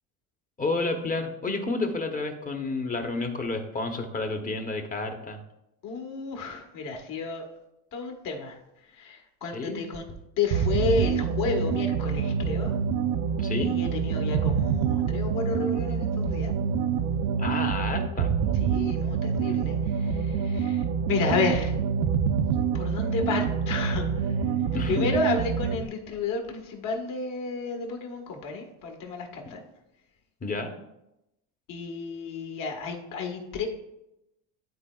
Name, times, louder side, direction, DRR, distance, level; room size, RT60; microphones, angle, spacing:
voice 1, 0.6-5.4 9.5-9.8 13.4-13.7 17.4-18.6 24.7-25.1 30.4-30.7, left 3 dB, 20° left, 5 dB, 0.9 m, -30 dB
voice 2, 5.8-7.5 7.9-12.8 13.5-16.5 18.5-21.8 22.7-24.5 24.9-29.6 31.7-33.7, left 4 dB, 55° left, 2 dB, 1.6 m, -31 dB
sound 1, 10.5-25.9, right 7 dB, 65° right, 0.6 m, -26 dB
12.0 x 4.1 x 2.4 m, 0.88 s
supercardioid pair, 110°, 39 cm